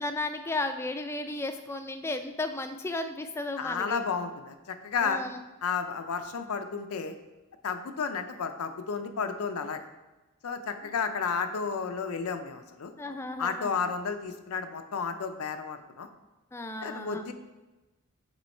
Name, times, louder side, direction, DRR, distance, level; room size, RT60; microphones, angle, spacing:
voice 1, 0.0-4.0 5.0-5.4 10.8-10.9 13.0-13.7 16.5-17.3, left 2 dB, 10° left, 7 dB, 0.3 m, -34 dB
voice 2, 3.6-5.2 5.6-7.2 7.6-9.8 10.4-12.9 13.4-16.1 16.8-17.3, left 5 dB, 80° left, 7 dB, 0.5 m, -32 dB
7.1 x 3.1 x 4.3 m, 1.1 s
head